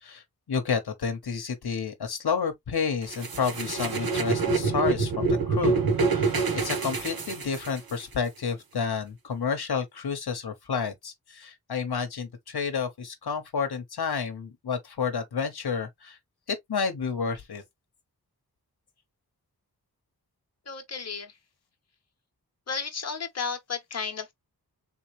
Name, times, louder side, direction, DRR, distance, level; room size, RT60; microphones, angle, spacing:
voice 1, 0.0-16.2 16.5-17.6, left 6 dB, 75° left, 0.9 m, -30 dB
sound 1, 3.1-8.0, right 4 dB, 65° right, 1.0 m, -26 dB
voice 2, 20.7-21.3 22.7-24.3, left 5 dB, 40° left, 1.0 m, -33 dB
3.7 x 3.0 x 3.0 m
wide cardioid pair, 70°, 38 cm